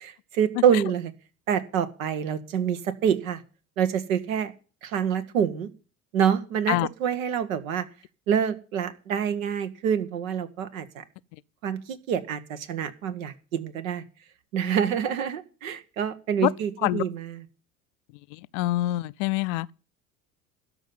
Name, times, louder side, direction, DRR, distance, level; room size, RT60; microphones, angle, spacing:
voice 1, 0.0-1.1 1.5-3.4 3.8-4.5 4.8-5.7 6.1-7.8 8.3-11.0 11.6-14.0 14.5-17.4, right 8 dB, 70° right, 1.2 m, -26 dB
voice 2, 18.5-19.7, left 18 dB, 60° left, 0.5 m, -25 dB
12.5 x 5.5 x 9.3 m
figure-of-eight pair, 65°, 42 cm